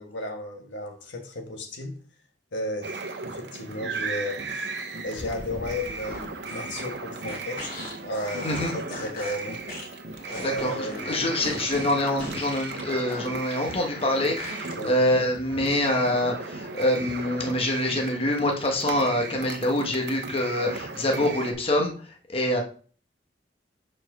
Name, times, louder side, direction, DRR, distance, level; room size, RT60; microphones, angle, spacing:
voice 1, 0.0-2.0 2.5-4.7 5.0-7.7 8.0-8.5 8.7-9.6 10.3-11.2 14.8-15.0, left 1 dB, 80° left, 1.3 m, -34 dB
sound 1, 2.8-21.5, right 3 dB, 70° right, 0.9 m, -36 dB
sound 2, 5.1-14.7, left 1 dB, 55° left, 2.9 m, -39 dB
voice 2, 10.4-22.6, left 1 dB, 35° left, 1.2 m, -25 dB
5.0 x 4.4 x 6.1 m
head